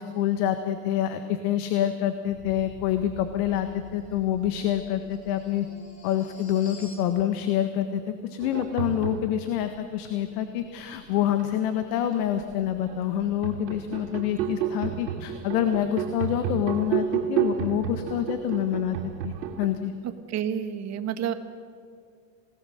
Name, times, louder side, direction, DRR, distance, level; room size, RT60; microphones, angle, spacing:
voice 1, 0.0-5.7 6.0-8.0 8.3-19.9, left 10 dB, 65° left, 8 dB, 1.6 m, -27 dB
sound 1, 2.2-7.1, left 3 dB, 25° left, 5.1 m, -47 dB
sound 2, 8.4-9.6 10.6-11.7 12.2-19.7, right 10 dB, 80° right, 2.9 m, -31 dB
voice 2, 20.0-21.3, right 9 dB, 30° right, 9 dB, 1.5 m, -30 dB
28.0 x 18.5 x 6.6 m, 2.2 s
supercardioid pair, 140°, 50 cm